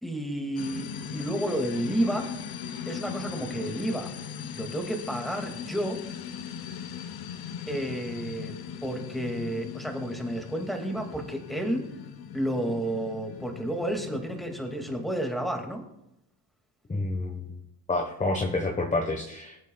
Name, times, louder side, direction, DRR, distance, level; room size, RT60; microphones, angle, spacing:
voice 1, 0.0-2.3 2.8-4.1 4.5-6.0 7.7-8.5 8.8-11.9 12.3-15.9, right 1 dB, ahead, 3 dB, 2.1 m, -31 dB
sound 1, 0.6-15.0, left 8 dB, 60° left, 0.9 m, -39 dB
voice 2, 16.9-17.5 17.9-19.6, left 2 dB, 20° left, 3 dB, 1.2 m, -28 dB
21.0 x 8.3 x 2.3 m, 0.85 s
cardioid pair, 100°, 40 cm